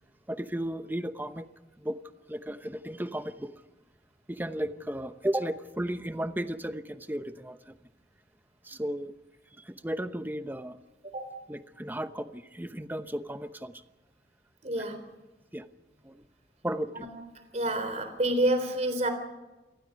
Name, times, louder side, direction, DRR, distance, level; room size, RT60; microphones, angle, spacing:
voice 1, 0.3-1.5 1.8-2.0 2.3-3.5 4.3-7.8 8.6-9.1 9.6-10.8 11.5-13.7 15.5-15.7 16.0-16.2 16.6-17.1, right 1 dB, 10° right, 10 dB, 0.9 m, -34 dB
voice 2, 14.6-15.0 16.9-17.1 17.5-19.1, right 1 dB, 40° right, 8 dB, 3.8 m, -28 dB
28.0 x 19.0 x 5.3 m, 1.1 s
head